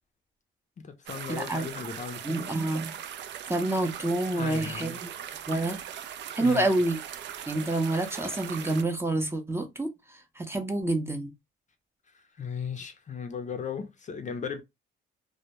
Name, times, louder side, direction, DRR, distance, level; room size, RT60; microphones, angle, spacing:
voice 1, 0.8-2.7 4.3-5.0 6.4-6.7 12.4-14.6, left 6 dB, 40° left, 0.5 m, -37 dB
sound 1, 1.1-8.8, right 9 dB, 65° right, 0.4 m, -40 dB
voice 2, 1.3-1.7 2.2-2.9 3.5-5.1 5.5-5.8 6.4-7.0 7.5-11.3, right 2 dB, 10° right, 0.6 m, -28 dB
2.1 x 2.1 x 2.8 m
cardioid pair, 90°, 20 cm